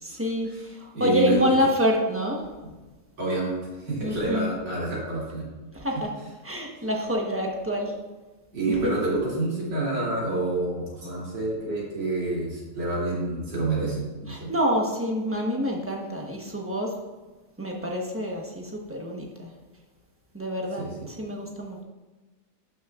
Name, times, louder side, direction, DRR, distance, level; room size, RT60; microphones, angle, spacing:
voice 1, 0.0-2.4 4.0-4.5 5.7-6.1 6.4-7.9 8.7-9.0 14.3-16.9 17.6-19.5 20.3-21.8, equal, 10° right, -1 dB, 0.8 m, -27 dB
voice 2, 0.9-1.4 3.2-3.5 3.9-5.4 8.5-14.5 20.8-21.1, right 2 dB, 75° right, -6 dB, 3.6 m, -28 dB
12.0 x 6.3 x 2.5 m, 1.2 s
omnidirectional pair, 1.9 m